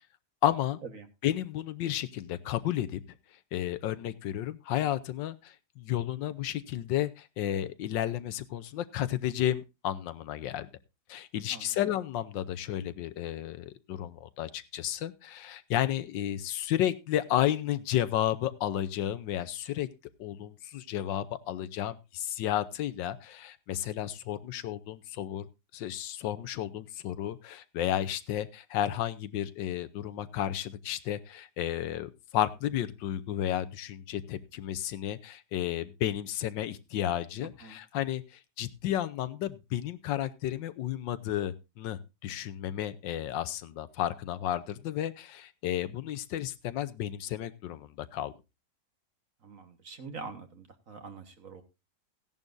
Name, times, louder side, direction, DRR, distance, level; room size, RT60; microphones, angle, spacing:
voice 1, 0.4-0.8 1.2-3.0 3.5-10.7 11.1-19.9 20.2-25.5 25.7-38.2 38.6-48.3, left 11 dB, 80° left, 14 dB, 1.4 m, -32 dB
voice 2, 49.4-51.6, right 4 dB, 50° right, 7 dB, 1.7 m, -45 dB
16.0 x 11.0 x 2.6 m, 0.26 s
omnidirectional pair, 2.0 m